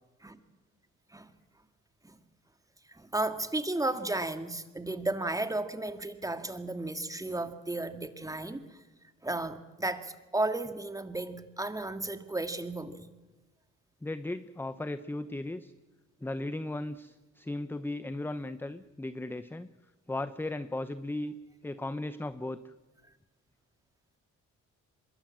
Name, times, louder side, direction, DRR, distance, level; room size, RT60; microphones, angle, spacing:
voice 1, 2.9-8.8 9.2-13.1, right 2 dB, 10° right, 9 dB, 1.9 m, -34 dB
voice 2, 14.0-15.7 16.2-19.7 20.1-21.3 21.6-22.7, left 2 dB, 5° left, 13 dB, 0.8 m, -36 dB
23.5 x 22.0 x 7.6 m, 1.2 s
cardioid pair, 90°, 30 cm